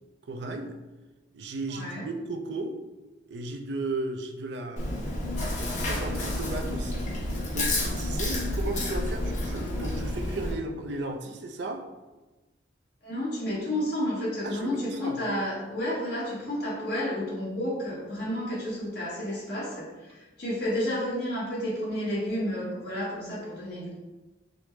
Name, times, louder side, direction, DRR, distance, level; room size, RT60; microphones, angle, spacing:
voice 1, 0.2-0.7 1.3-2.8 3.3-4.9 5.6-7.1 7.5-11.8 14.4-15.2, right 2 dB, 65° right, 5 dB, 0.4 m, -35 dB
voice 2, 1.7-2.0 13.0-24.0, left 1 dB, 60° left, -6 dB, 1.3 m, -31 dB
Chewing mastication, 4.8-10.5, left 1 dB, 40° left, 0.7 m, -30 dB
4.9 x 2.0 x 3.1 m, 1.1 s
head